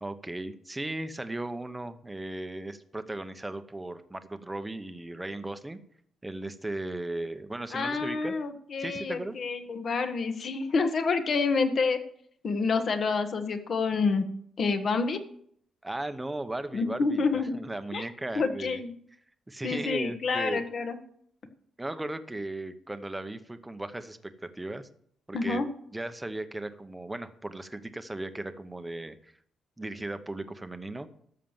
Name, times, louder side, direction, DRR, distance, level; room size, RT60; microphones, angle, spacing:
voice 1, 0.0-5.8 6.2-8.3 8.8-9.4 15.8-18.8 19.5-20.6 21.8-24.9 25.3-25.7 25.9-29.3 29.8-31.1, right 2 dB, 10° right, 10 dB, 0.9 m, -36 dB
voice 2, 7.7-12.0 12.4-14.3 14.6-15.2 16.7-17.6 17.9-18.0 18.3-18.9 19.6-21.0 25.3-25.7, left 4 dB, 45° left, 8 dB, 1.4 m, -28 dB
13.0 x 6.7 x 7.3 m, 0.65 s
cardioid pair, 140°, 0 cm